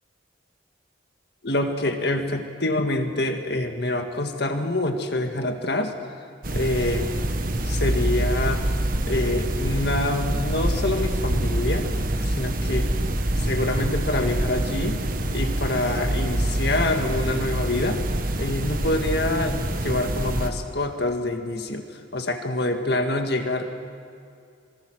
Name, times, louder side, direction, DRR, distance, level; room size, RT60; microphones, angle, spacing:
voice 1, 1.4-5.9 6.5-7.1 7.6-8.7 9.1-11.9 12.2-12.9 13.4-15.0 15.3-18.0 18.4-21.9 22.1-23.7, left 2 dB, 55° left, 5 dB, 2.0 m, -26 dB
sound 1, 6.4-20.5, right 1 dB, 45° right, 1.4 m, -26 dB
26.0 x 24.5 x 6.4 m, 2.4 s
head